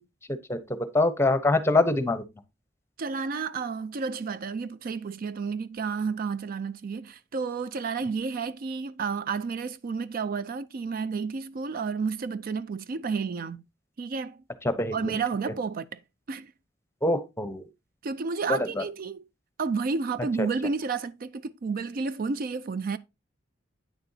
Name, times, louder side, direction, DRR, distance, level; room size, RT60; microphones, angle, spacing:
voice 1, 0.5-2.2 14.6-15.2 17.0-17.6 18.5-18.8 20.4-20.5, left 2 dB, 15° left, 0.8 m, -25 dB
voice 2, 3.0-13.6 14.0-14.4 14.9-16.0 16.3-16.5 18.0-19.2 19.6-23.0, right 5 dB, 50° right, 0.4 m, -31 dB
9.0 x 6.8 x 2.7 m
head